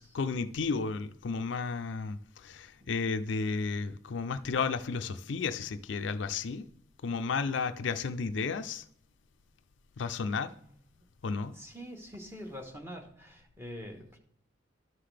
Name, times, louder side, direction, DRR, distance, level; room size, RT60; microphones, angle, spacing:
voice 1, 0.0-6.7 7.0-8.8 10.0-10.5 11.2-11.5, left 4 dB, 75° left, 0.4 m, -33 dB
voice 2, 11.5-14.2, equal, 15° right, 1.2 m, -45 dB
12.5 x 5.7 x 3.3 m
head